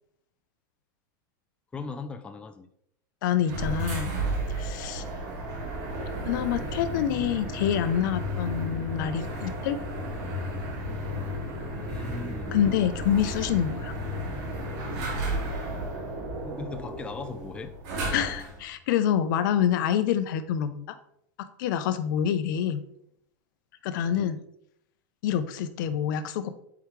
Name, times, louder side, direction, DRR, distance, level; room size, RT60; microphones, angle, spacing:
voice 1, 1.7-2.7 11.7-12.6 16.4-17.7 24.1-24.4, left 4 dB, 10° left, 8 dB, 0.4 m, -38 dB
voice 2, 3.2-4.1 4.6-5.0 6.2-9.8 12.5-13.9 18.1-20.9 21.6-22.8 23.8-24.4 25.2-26.5, left 9 dB, 70° left, 12 dB, 0.6 m, -26 dB
sound 1, 3.4-18.6, right 1 dB, 60° right, 2.3 m, -33 dB
7.1 x 4.7 x 3.2 m, 0.74 s
supercardioid pair, 140°, 11 cm